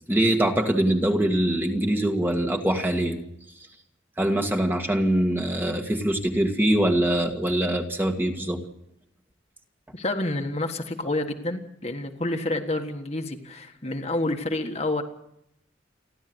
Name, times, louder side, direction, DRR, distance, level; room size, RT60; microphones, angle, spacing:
voice 1, 0.1-3.2 4.2-8.6 13.8-14.0, right 1 dB, 10° right, 3 dB, 1.9 m, -23 dB
voice 2, 9.9-15.0, left 2 dB, 35° left, 5 dB, 1.6 m, -29 dB
29.5 x 12.0 x 8.0 m, 0.80 s
head